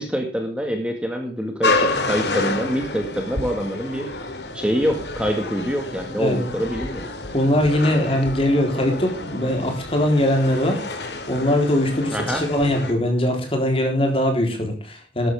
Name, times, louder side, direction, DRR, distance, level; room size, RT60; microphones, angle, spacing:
voice 1, 0.0-1.7 2.0-4.3 4.5-7.1 12.1-12.4, equal, 5° right, 3 dB, 1.9 m, -25 dB
sound 1, 1.6-12.9, left 2 dB, 75° left, 2.4 m, -29 dB
voice 2, 6.2-6.6 7.3-15.3, left 1 dB, 30° left, 3 dB, 3.8 m, -21 dB
13.0 x 12.5 x 3.6 m, 0.36 s
head